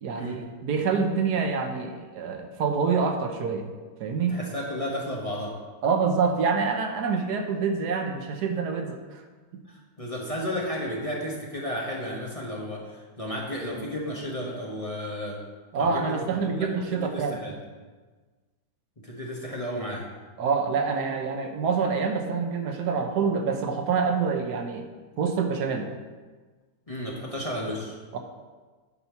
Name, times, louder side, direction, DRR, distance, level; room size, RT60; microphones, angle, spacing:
voice 1, 0.0-3.7 4.0-4.3 5.8-9.2 9.5-9.6 15.7-17.4 20.4-24.9 25.2-25.9 28.1-28.2, right 5 dB, 75° right, 4 dB, 1.3 m, -26 dB
voice 2, 4.3-5.5 9.7-15.4 15.7-17.6 19.0-20.1 26.9-27.9, equal, 25° left, -4 dB, 1.2 m, -33 dB
9.7 x 4.4 x 5.7 m, 1.4 s
omnidirectional pair, 1.8 m